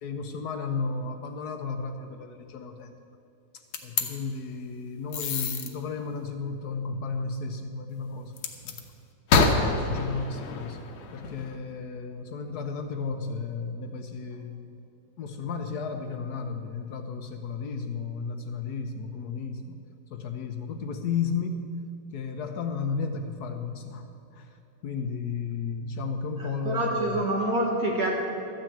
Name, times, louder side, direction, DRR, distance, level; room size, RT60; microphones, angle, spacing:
voice 1, 0.0-3.0 3.8-8.3 8.6-8.8 9.7-10.8 11.1-14.6 15.2-19.8 20.1-21.6 22.1-24.6 24.8-27.3, left 5 dB, 65° left, 6 dB, 1.1 m, -33 dB
sound 1, 3.7-4.1 5.1-5.7 8.4-8.8 9.3-11.5, left 4 dB, 80° left, 1.8 m, -26 dB
voice 2, 26.4-28.2, right 1 dB, 55° right, -2 dB, 1.7 m, -27 dB
13.0 x 6.5 x 8.6 m, 2.8 s
omnidirectional pair, 2.1 m